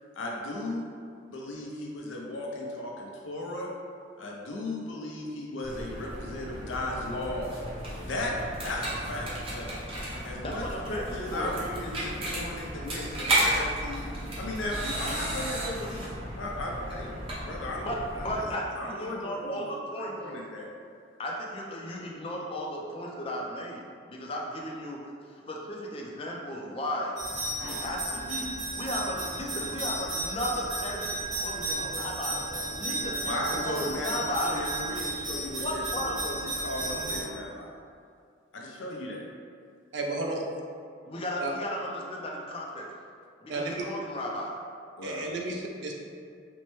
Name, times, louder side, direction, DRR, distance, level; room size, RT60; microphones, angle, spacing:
voice 1, 0.2-0.9 1.3-3.7 4.2-7.6 8.1-8.3 8.6-9.7 10.2-14.1 14.4-16.1 16.4-17.1 17.4-18.5 18.8-19.6 20.0-20.7 33.3-37.7 38.5-39.2 45.0-45.3, left 1 dB, 85° left, -2 dB, 0.6 m, -36 dB
sound 1, 5.6-18.4, right 1 dB, 30° right, 0.8 m, -34 dB
voice 2, 10.4-11.6 17.8-20.3 21.2-23.8 24.1-27.2 27.6-32.4 32.8-34.6 35.6-36.2 41.1-42.9 43.4-44.6, equal, 30° left, -2 dB, 0.4 m, -35 dB
sound 2, 27.2-37.2, right 2 dB, 85° right, 1.3 m, -34 dB
voice 3, 39.9-40.5 41.4-41.5 43.5-43.7 45.0-45.9, right 2 dB, 65° right, 0 dB, 0.5 m, -32 dB
4.3 x 2.1 x 3.0 m, 2.3 s
head